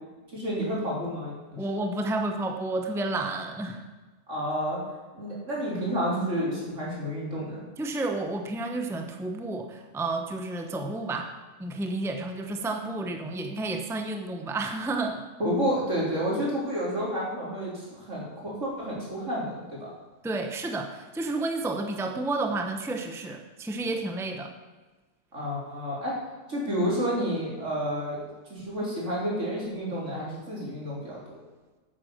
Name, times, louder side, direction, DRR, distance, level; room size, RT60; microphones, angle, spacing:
voice 1, 0.3-1.6 4.3-4.8 5.1-7.6 15.4-19.9 25.3-26.2 26.5-28.2 28.5-31.2, equal, 75° right, -5 dB, 3.9 m, -30 dB
voice 2, 1.6-3.8 7.8-11.3 11.6-15.2 20.2-24.5, right 2 dB, 5° right, 4 dB, 0.8 m, -31 dB
9.0 x 8.7 x 6.6 m, 1.3 s
omnidirectional pair, 1.3 m